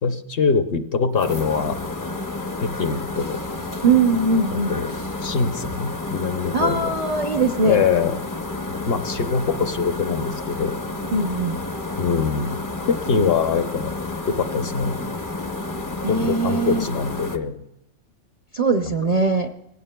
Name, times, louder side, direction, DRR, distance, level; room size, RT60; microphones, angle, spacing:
voice 1, 0.0-1.8 2.6-3.4 4.5-4.9 5.2-6.9 7.6-8.2 8.9-10.8 12.0-13.9 14.3-15.0 16.1-17.6 18.8-19.2, left 5 dB, 60° left, 8 dB, 0.8 m, -23 dB
sound 1, 1.2-17.4, left 2 dB, 25° left, 0.4 m, -30 dB
voice 2, 3.8-4.8 6.5-7.8 11.1-11.6 16.0-16.9 18.5-19.5, right 3 dB, 45° right, 5 dB, 0.5 m, -21 dB
20.0 x 16.5 x 2.2 m, 0.84 s
omnidirectional pair, 1.3 m